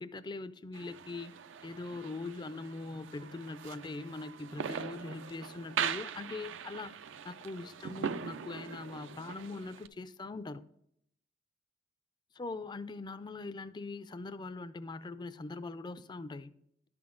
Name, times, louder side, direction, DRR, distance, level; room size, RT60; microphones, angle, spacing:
voice 1, 0.0-1.4 1.6-6.9 7.2-10.7 12.4-16.5, left 3 dB, 25° left, 0.4 m, -42 dB
sound 1, 0.7-9.9, right 7 dB, 70° right, 0.4 m, -41 dB
11.0 x 6.1 x 3.7 m
head